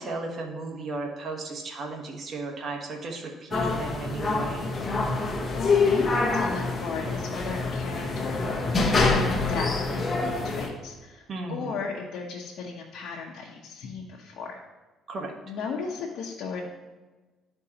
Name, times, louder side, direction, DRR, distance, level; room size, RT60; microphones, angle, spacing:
voice 1, 0.0-4.7 11.3-11.8 15.1-15.3, right 3 dB, 50° right, 1 dB, 1.3 m, -35 dB
sound 1, 3.5-10.7, left 3 dB, 35° left, 1.1 m, -26 dB
voice 2, 5.5-14.6 15.5-16.6, left 5 dB, 70° left, -4 dB, 1.0 m, -36 dB
11.5 x 4.5 x 2.9 m, 1.2 s
cardioid pair, 95°, 0 cm